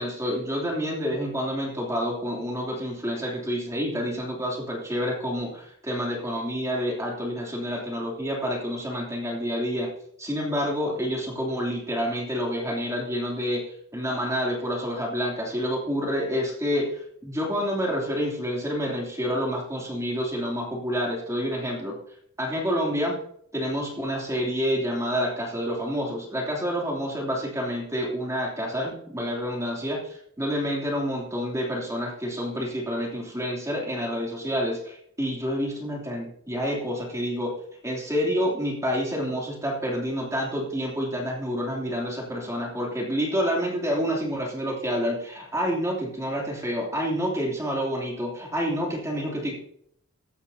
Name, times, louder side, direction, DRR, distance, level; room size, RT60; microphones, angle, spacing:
voice 1, 0.0-9.9 10.2-13.6 13.9-22.0 22.4-23.2 23.5-37.5 37.8-49.5, equal, 15° right, -2 dB, 2.9 m, -28 dB
15.5 x 12.5 x 2.8 m, 0.68 s
head